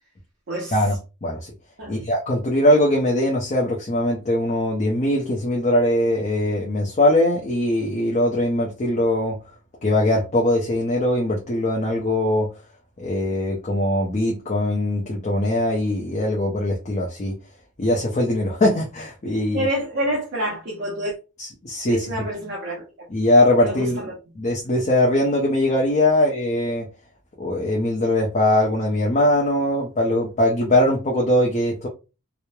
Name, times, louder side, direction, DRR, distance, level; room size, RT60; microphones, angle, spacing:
voice 1, 0.7-1.5 1.9-9.4 9.8-12.5 13.0-17.3 17.8-19.6 21.4-22.1 23.1-24.0 24.4-26.9 27.4-31.9, left 1 dB, 30° left, 0.4 m, -21 dB
voice 2, 19.5-21.1 21.9-23.1 23.6-24.1, right 1 dB, 50° right, 0.6 m, -27 dB
2.9 x 2.0 x 2.2 m
head